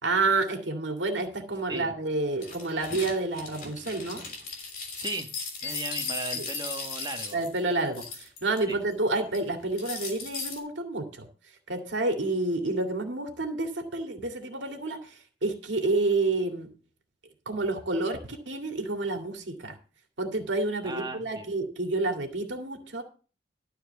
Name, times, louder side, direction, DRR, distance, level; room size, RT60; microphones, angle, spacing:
voice 1, 0.0-4.2 6.3-6.5 7.3-11.3 11.7-16.7 17.5-18.2 18.5-19.7 20.2-23.0, right 2 dB, 85° right, 4 dB, 2.3 m, -29 dB
sound 1, 2.4-8.6 8.9-9.4 9.8-10.6, left 5 dB, 50° left, 3.3 m, -37 dB
voice 2, 5.0-5.3 5.6-7.4 8.7-8.8 20.8-21.5, right 2 dB, 25° right, 4 dB, 1.5 m, -36 dB
12.5 x 4.6 x 8.0 m, 0.37 s
head